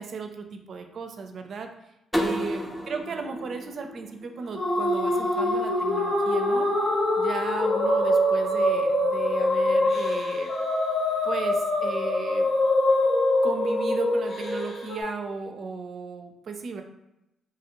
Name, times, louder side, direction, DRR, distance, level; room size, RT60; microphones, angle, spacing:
voice 1, 0.0-1.7 2.2-6.7 7.2-10.5 11.2-12.5 13.4-16.8, right 5 dB, 60° right, 5 dB, 0.4 m, -36 dB
sound 1, 2.1-4.9, equal, 5° left, 0.6 m, -32 dB
sound 2, 4.6-15.0, left 1 dB, 65° left, 0.8 m, -24 dB
2.9 x 2.4 x 2.9 m, 0.90 s
supercardioid pair, 60°, 0 cm